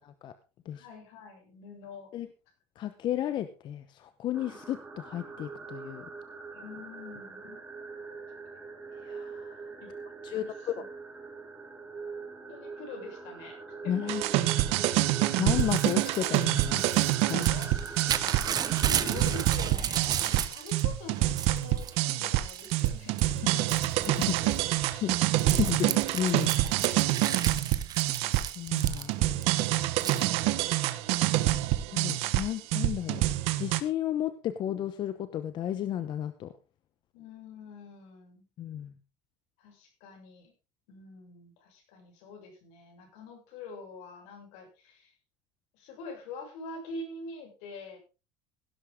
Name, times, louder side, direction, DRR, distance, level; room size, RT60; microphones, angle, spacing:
voice 1, 0.7-2.1 6.5-7.6 9.8-9.9 10.2-10.9 12.5-13.6 13.8-14.1 17.3-20.2 20.5-23.8 24.2-24.5 26.4-26.7 29.2-30.4 31.2-31.7 37.1-38.4 39.6-40.5 40.9-45.1 45.7-48.0, left 3 dB, 75° left, 3 dB, 6.7 m, -45 dB
voice 2, 2.8-6.1 9.0-9.6 10.2-10.4 10.8-10.9 13.9-14.2 15.4-16.8 17.2-17.4 24.9-26.5 28.6-29.3 31.9-33.2 33.6-36.5 38.6-38.9, left 11 dB, 45° left, 11 dB, 0.9 m, -33 dB
sound 1, 4.3-19.5, right 4 dB, 10° right, 4.2 m, -43 dB
sound 2, 14.1-33.8, right 16 dB, 65° right, 1.2 m, -27 dB
Crumpling crinkling / Tearing, 15.6-20.8 21.2-21.9 22.5-22.9 23.2-29.4 30.0-30.3, right 9 dB, 35° right, 1.2 m, -34 dB
16.5 x 12.0 x 3.7 m, 0.33 s
cardioid pair, 135°, 11 cm